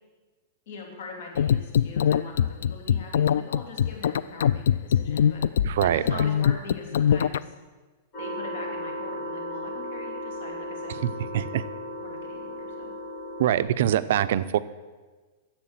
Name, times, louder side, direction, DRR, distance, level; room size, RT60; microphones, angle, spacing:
voice 1, 0.7-7.5 8.2-11.2 12.0-12.9, left 4 dB, 65° left, 1 dB, 3.1 m, -42 dB
sound 1, 1.4-7.4, left 8 dB, 80° left, 0.3 m, -22 dB
voice 2, 5.6-6.2 10.9-11.7 13.4-14.6, right 11 dB, 65° right, 13 dB, 0.5 m, -24 dB
sound 2, 8.1-13.6, equal, 30° left, 2.1 m, -35 dB
10.5 x 7.8 x 7.4 m, 1.3 s
supercardioid pair, 165°, 0 cm